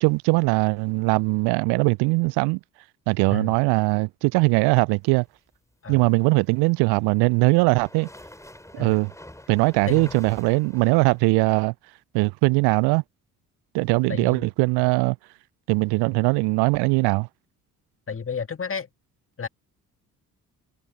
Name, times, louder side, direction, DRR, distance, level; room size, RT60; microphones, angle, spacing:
voice 1, 0.0-2.6 3.1-5.2 5.9-8.1 8.7-9.1 9.5-11.7 12.1-13.0 13.7-15.2 15.7-17.3, right 28 dB, 60° right, 0.8 m, -21 dB
sound 1, 6.5-11.6, left 1 dB, 5° left, 6.0 m, -46 dB
voice 2, 14.1-14.5 18.1-18.9 19.4-19.5, left 6 dB, 30° left, 2.1 m, -32 dB
figure-of-eight pair, 45°, 45 cm